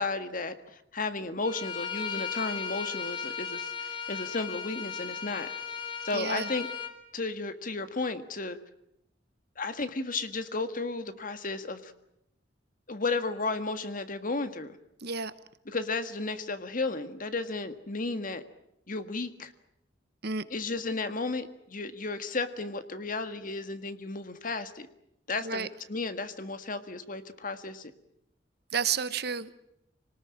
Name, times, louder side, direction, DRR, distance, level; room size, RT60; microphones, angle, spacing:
voice 1, 0.0-5.5 6.0-6.7 7.1-8.6 9.6-11.9 12.9-14.8 15.7-18.4 18.9-19.5 20.5-24.9 25.3-27.9, left 3 dB, 50° left, 10 dB, 1.7 m, -33 dB
Bowed string instrument, 1.4-6.9, left 6 dB, 30° left, 2.4 m, -36 dB
voice 2, 6.1-6.5 15.0-15.3 20.2-20.4 25.4-25.7 28.7-29.5, right 6 dB, 60° right, 14 dB, 1.1 m, -31 dB
26.5 x 19.5 x 8.8 m, 0.80 s
head